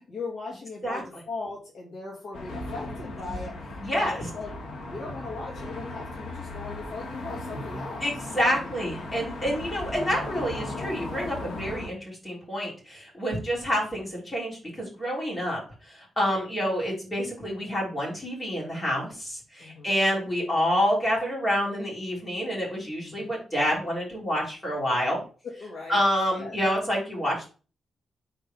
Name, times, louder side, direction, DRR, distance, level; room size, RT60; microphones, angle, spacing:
voice 1, 0.0-4.5 4.8-8.7 9.4-9.8 19.6-20.2 23.1-23.3 25.6-26.0 26.4-26.6, left 3 dB, 60° left, -2 dB, 2.1 m, -39 dB
sound 1, 2.3-11.9, left 2 dB, 90° left, 1.5 m, -37 dB
voice 2, 3.8-4.1 8.0-25.2 25.9-27.5, equal, 15° left, -4 dB, 3.4 m, -28 dB
4.9 x 4.4 x 5.3 m, 0.36 s
wide cardioid pair, 155°, 0 cm